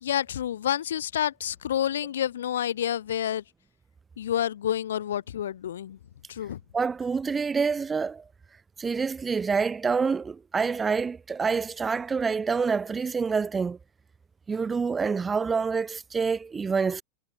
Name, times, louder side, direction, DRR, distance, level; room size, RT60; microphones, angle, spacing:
voice 1, 0.0-3.4 4.2-6.0 6.3-6.6, left 10 dB, 85° left, 0.9 m, -29 dB
voice 2, 6.7-8.2 8.8-13.8 14.5-17.0, right 5 dB, 20° right, 1.8 m, -27 dB
hypercardioid pair, 100°, 0 cm